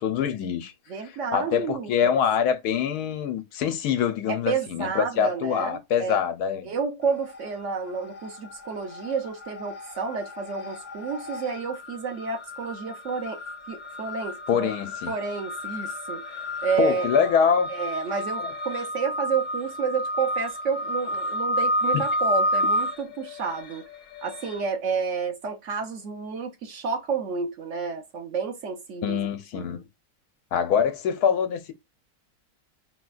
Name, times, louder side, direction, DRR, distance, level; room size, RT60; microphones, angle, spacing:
voice 1, 0.0-0.7 1.3-6.7 14.5-15.1 16.8-17.7 18.4-18.5 21.9-22.0 29.0-29.9 30.5-31.7, left 7 dB, 90° left, 1.2 m, -24 dB
voice 2, 0.9-2.2 4.3-6.2 6.6-13.4 13.7-14.7 15.1-17.1 17.7-23.9 24.2-29.2 29.5-29.6, right 5 dB, 60° right, 0.9 m, -30 dB
sound 1, 7.1-7.7 8.0-24.6, equal, 60° left, 0.4 m, -31 dB
4.1 x 2.2 x 2.4 m
omnidirectional pair, 1.6 m